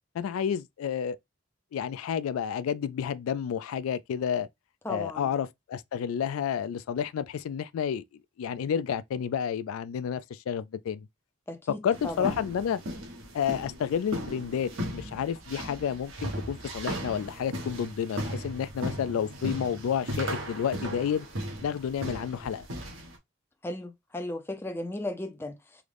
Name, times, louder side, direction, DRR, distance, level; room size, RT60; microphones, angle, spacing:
voice 1, 0.1-1.2 1.7-4.5 4.9-8.0 8.4-11.1 11.7-12.8 13.3-21.3 21.6-22.7, left 8 dB, 90° left, 0.3 m, -30 dB
voice 2, 4.8-5.3 11.5-12.3 23.6-25.8, left 1 dB, 10° left, 0.3 m, -36 dB
sound 1, 11.9-23.2, equal, 80° right, 1.1 m, -37 dB
3.7 x 2.1 x 3.2 m
head